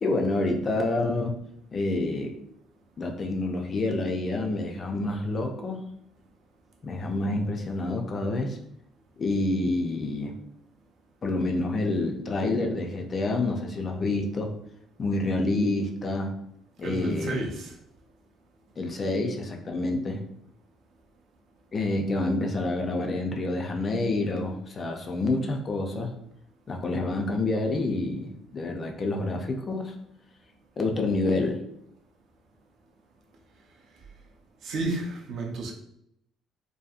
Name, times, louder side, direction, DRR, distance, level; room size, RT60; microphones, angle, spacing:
voice 1, 0.0-1.3 1.7-2.3 3.0-5.8 6.8-8.6 9.2-10.4 11.2-14.5 15.0-16.4 16.8-17.5 18.8-20.2 21.7-26.1 26.7-29.9 30.8-31.6, left 2 dB, 30° left, 3 dB, 0.3 m, -28 dB
voice 2, 16.8-17.7 34.6-35.7, right 2 dB, 55° right, 1 dB, 0.5 m, -31 dB
2.6 x 2.5 x 2.4 m, 0.74 s
cardioid pair, 155°, 0 cm